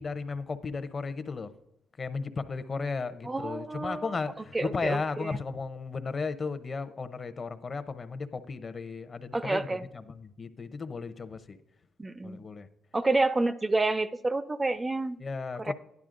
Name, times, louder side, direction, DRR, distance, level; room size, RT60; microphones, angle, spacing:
voice 1, 0.0-1.5 2.0-9.7 9.9-11.6 12.2-12.7 15.2-15.7, left 4 dB, 40° left, 11 dB, 0.6 m, -35 dB
voice 2, 3.2-4.2 4.5-5.4 9.3-9.9 12.0-12.4 12.9-15.2 15.6-15.7, right 2 dB, 20° right, 14 dB, 0.4 m, -29 dB
11.5 x 10.5 x 2.5 m, 0.82 s
cardioid pair, 90°, 0 cm